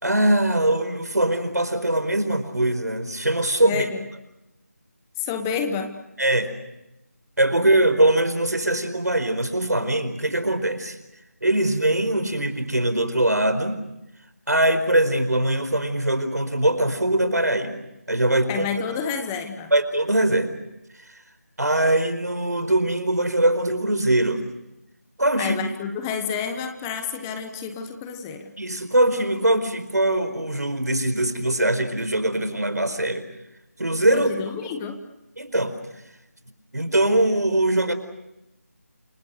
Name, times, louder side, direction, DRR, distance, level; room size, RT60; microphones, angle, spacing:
voice 1, 0.0-3.8 6.2-6.5 7.4-11.0 11.4-13.8 14.5-17.8 18.1-18.7 19.7-20.6 21.6-24.4 25.2-25.6 28.6-33.2 33.8-34.3 35.4-35.7 36.7-37.9, right 1 dB, 85° right, 10 dB, 4.8 m, -22 dB
voice 2, 3.6-4.1 5.2-5.9 18.5-19.7 25.4-28.5 34.1-35.0, left 6 dB, 10° left, 7 dB, 1.2 m, -29 dB
29.0 x 24.5 x 6.7 m, 0.92 s
figure-of-eight pair, 165°, 9 cm